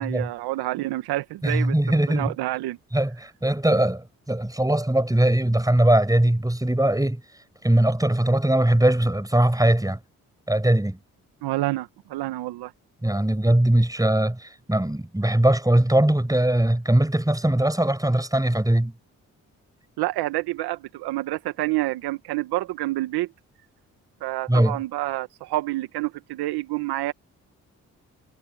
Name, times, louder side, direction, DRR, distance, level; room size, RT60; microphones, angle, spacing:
voice 1, 0.0-1.8 2.1-2.8 11.4-12.7 20.0-23.3 24.2-27.1, right 17 dB, 80° right, 1.6 m, -28 dB
voice 2, 1.4-2.3 2.9-7.2 7.6-10.0 10.5-11.0 13.0-18.9 24.5-24.8, right 1 dB, 10° right, 6.9 m, -21 dB
hypercardioid pair, 45°, 38 cm